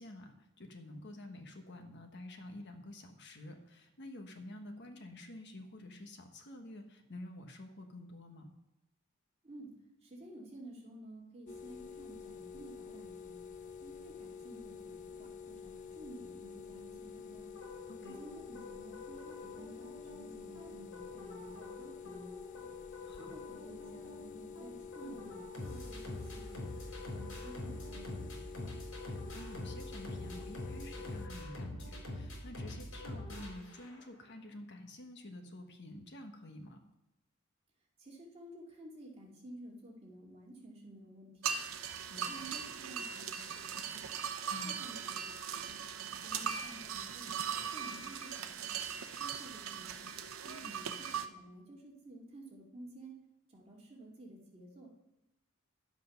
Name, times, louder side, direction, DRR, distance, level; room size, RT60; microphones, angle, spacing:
voice 1, 0.0-8.5 17.9-18.2 23.0-23.3 25.0-25.1 29.0-36.8 44.5-44.8 50.4-50.7, left 1 dB, 55° left, 5 dB, 1.3 m, -49 dB
voice 2, 10.0-13.4 13.8-17.5 18.0-22.7 23.2-26.7 27.1-28.7 38.0-41.4 42.1-43.9 44.6-48.7 49.2-50.2 50.6-53.2 53.5-54.9, right 1 dB, 30° right, -3 dB, 2.5 m, -52 dB
sound 1, 11.5-31.3, left 6 dB, 35° left, 0.5 m, -49 dB
sound 2, 17.5-34.2, left 1 dB, 80° left, 4.1 m, -46 dB
sound 3, 41.4-51.3, right 7 dB, 75° right, 0.7 m, -39 dB
11.0 x 7.9 x 5.8 m, 0.89 s
head